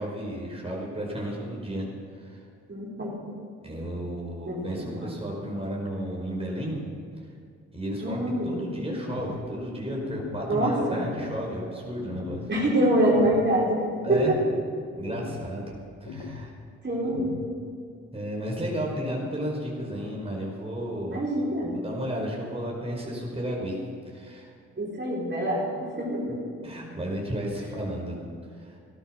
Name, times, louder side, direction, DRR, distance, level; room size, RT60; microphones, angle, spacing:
voice 1, 0.0-1.9 2.2-2.4 3.6-6.8 7.7-12.5 14.0-14.3 14.9-16.5 18.1-21.2 21.7-23.8 24.1-24.5 26.6-28.1 28.6-28.8, equal, 20° right, -3 dB, 5.0 m, -33 dB
voice 2, 2.7-3.2 4.5-5.1 8.0-8.6 10.5-11.0 12.5-13.8 14.1-14.4 16.8-17.3 21.1-21.7 24.8-26.4 27.6-27.7, right 1 dB, 35° right, -5 dB, 5.0 m, -25 dB
sound 1, 9.1-9.5 10.1-10.5 11.1-11.5 12.1-12.5 13.1-13.5 14.1-14.5 15.1-15.5 16.1-16.5 17.1-17.5, left 5 dB, 80° left, 1.3 m, -38 dB
15.5 x 12.5 x 6.4 m, 2.3 s
hypercardioid pair, 40°, 31 cm